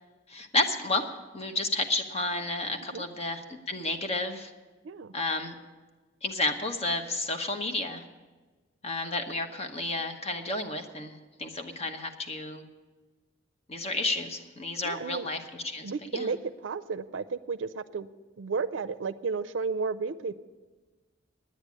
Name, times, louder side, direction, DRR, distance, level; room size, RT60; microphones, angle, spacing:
voice 1, 0.3-1.1 1.3-4.5 5.1-5.5 6.2-8.0 8.8-12.6 13.7-16.3, left 2 dB, 35° left, 6 dB, 1.0 m, -31 dB
voice 2, 14.8-15.3 15.8-18.1 18.4-20.4, right 4 dB, 65° right, 14 dB, 0.5 m, -33 dB
9.9 x 9.6 x 8.3 m, 1.3 s
head